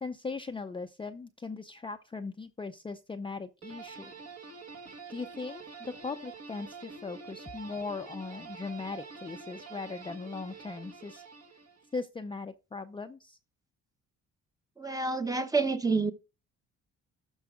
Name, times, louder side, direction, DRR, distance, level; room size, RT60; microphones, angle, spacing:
voice 1, 0.0-4.1 5.1-11.2 11.9-13.4, left 4 dB, 15° left, 0.5 m, -39 dB
sound 1, 3.6-12.0, right 4 dB, 60° right, 1.9 m, -47 dB
voice 2, 14.8-16.1, right 3 dB, 10° right, 0.8 m, -28 dB
12.5 x 4.7 x 3.5 m
cardioid pair, 90°, 30 cm